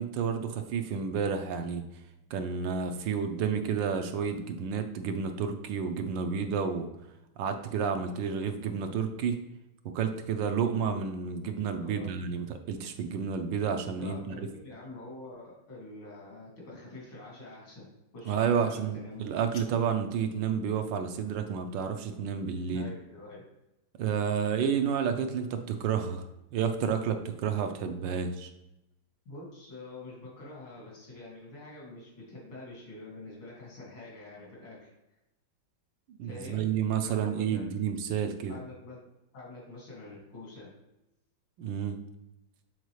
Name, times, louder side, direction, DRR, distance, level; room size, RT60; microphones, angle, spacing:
voice 1, 0.0-1.8 2.3-6.9 7.4-9.4 9.9-14.5 18.3-22.9 24.0-26.3 26.5-28.5 36.1-38.6 41.6-42.0, right 7 dB, 75° right, 6 dB, 1.2 m, -30 dB
voice 2, 11.7-12.2 14.0-17.9 18.1-19.3 22.7-23.4 29.2-34.9 36.2-36.7 37.0-37.6 38.5-39.0 39.3-40.7, left 2 dB, 80° left, -5 dB, 3.2 m, -46 dB
sound 1, 19.1-20.1, left 5 dB, 60° left, 1.0 m, -53 dB
8.1 x 4.1 x 3.1 m, 0.92 s
omnidirectional pair, 2.2 m